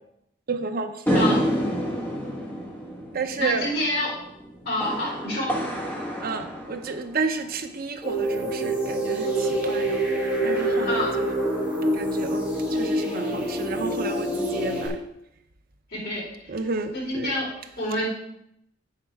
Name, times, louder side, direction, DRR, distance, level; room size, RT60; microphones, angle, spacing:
voice 1, 0.5-1.3 3.1-3.7 6.2-10.0 10.4-11.4 11.9-15.0 16.5-17.3, right 4 dB, 50° right, 7 dB, 0.7 m, -31 dB
sound 1, 1.1-7.6, equal, 10° left, 1.5 m, -29 dB
voice 2, 3.4-4.1 4.6-5.5 10.8-11.1 15.9-16.3 16.9-17.5 17.8-18.1, left 1 dB, 55° left, -7 dB, 4.0 m, -27 dB
sound 2, 8.0-14.9, right 1 dB, 5° right, 2.7 m, -26 dB
8.6 x 6.6 x 4.7 m, 0.78 s
head